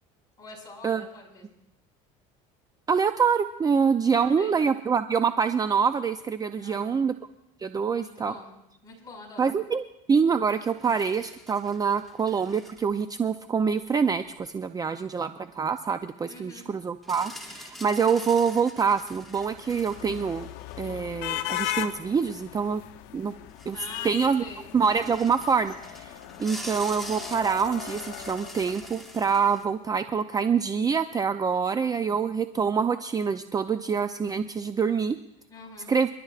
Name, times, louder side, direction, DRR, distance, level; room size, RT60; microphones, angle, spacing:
voice 1, 0.4-1.6 4.2-4.5 6.6-7.0 7.8-8.5 8.8-9.5 16.2-16.7 23.7-24.6 35.5-35.9, left 2 dB, 20° left, -2 dB, 5.4 m, -45 dB
voice 2, 2.9-7.1 7.6-8.3 9.4-9.8 10.1-20.5 20.8-22.8 23.1-23.3 23.7-23.8 24.0-24.4 24.7-35.2 35.9-36.1, right 6 dB, 20° right, 10 dB, 0.5 m, -25 dB
Rotating bookracks Hasedera Temple, 10.5-13.0 13.6-13.7 17.0-21.4 23.0-23.1 23.3-24.3 24.8-29.6, equal, ahead, 1.9 m, -45 dB
sound 1, 19.1-29.4, left 13 dB, 70° left, 0.8 m, -38 dB
28.0 x 11.5 x 2.5 m, 0.84 s
supercardioid pair, 105°, 18 cm